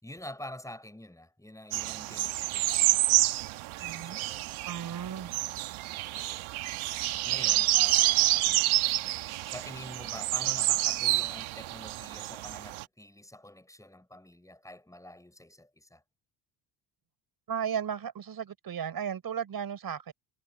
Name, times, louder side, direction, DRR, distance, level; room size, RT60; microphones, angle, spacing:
voice 1, 0.0-3.3 4.0-4.4 7.2-8.6 9.4-16.0, left 1 dB, 5° left, 6.5 m, -46 dB
sound 1, 1.7-12.8, right 17 dB, 90° right, 1.3 m, -28 dB
voice 2, 3.7-4.2 4.7-5.4 17.5-20.1, right 8 dB, 50° right, 5.2 m, -35 dB
cardioid pair, 105°, 47 cm